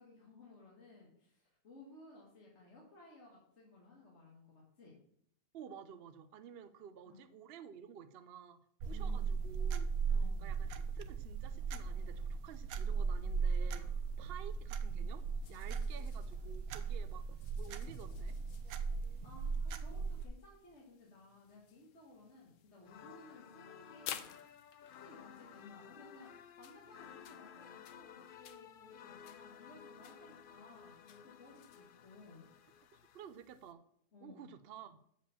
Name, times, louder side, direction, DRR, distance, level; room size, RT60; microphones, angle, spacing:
voice 1, 0.0-5.0 7.1-7.2 8.9-9.4 10.1-10.5 15.7-15.9 19.2-24.3 24.7-32.5 34.1-34.5, left 2 dB, 50° left, -4 dB, 2.1 m, -58 dB
voice 2, 5.5-8.6 8.8-9.9 10.4-10.7 10.9-13.9 14.2-15.2 15.5-17.2 17.6-18.4 32.9-33.8 34.2-35.0, right 8 dB, 60° right, 10 dB, 0.6 m, -52 dB
sound 1, 8.8-20.2, right 5 dB, 80° right, 1.2 m, -37 dB
sound 2, 15.4-33.7, left 10 dB, 65° left, 0.9 m, -56 dB
sound 3, 22.8-33.3, left 8 dB, 90° left, 0.4 m, -55 dB
7.4 x 5.0 x 7.0 m, 0.69 s
omnidirectional pair, 1.5 m